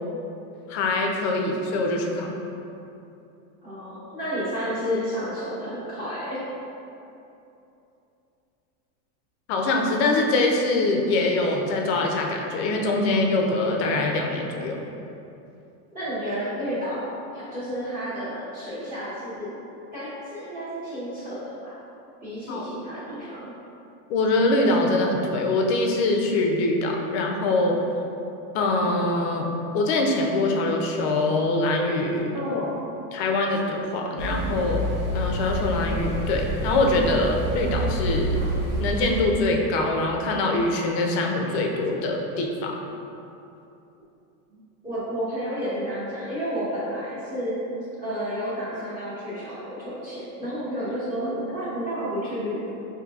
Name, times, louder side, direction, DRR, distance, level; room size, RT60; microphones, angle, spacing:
voice 1, 0.7-2.4 9.5-14.8 22.5-22.7 24.1-27.8 28.5-32.3 33.1-34.9 35.1-38.4 38.8-42.8, left 2 dB, 45° left, 1 dB, 0.4 m, -23 dB
voice 2, 3.6-6.4 15.9-19.6 19.9-21.8 22.2-23.5 32.3-32.9 44.5-47.7 48.0-52.7, equal, 20° right, -11 dB, 0.9 m, -31 dB
sound 1, 34.2-39.2, equal, 35° right, 0.4 m, -28 dB
5.1 x 2.7 x 2.3 m, 2.8 s
supercardioid pair, 160°, 47 cm